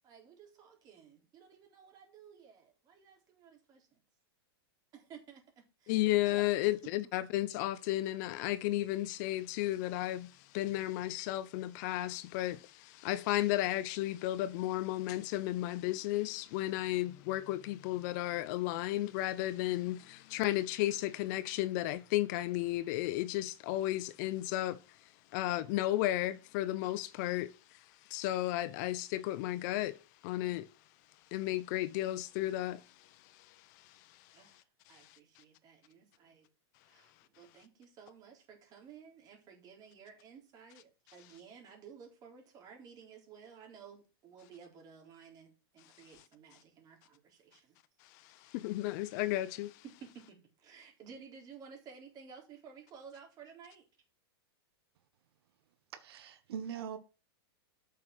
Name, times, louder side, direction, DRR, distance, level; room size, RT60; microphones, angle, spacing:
voice 1, 0.0-4.0 4.9-5.4 5.8-6.9 34.3-36.5 36.8-47.8 49.8-53.8, right 6 dB, 30° right, 3.9 m, -55 dB
voice 2, 5.9-25.0 25.3-30.0 30.2-30.7 31.3-34.3 34.9-35.2 48.1-49.8, left 15 dB, 45° left, 0.7 m, -34 dB
voice 3, 55.9-57.0, right 8 dB, 70° right, 1.3 m, -41 dB
8.5 x 6.5 x 6.0 m
hypercardioid pair, 145°, 13 cm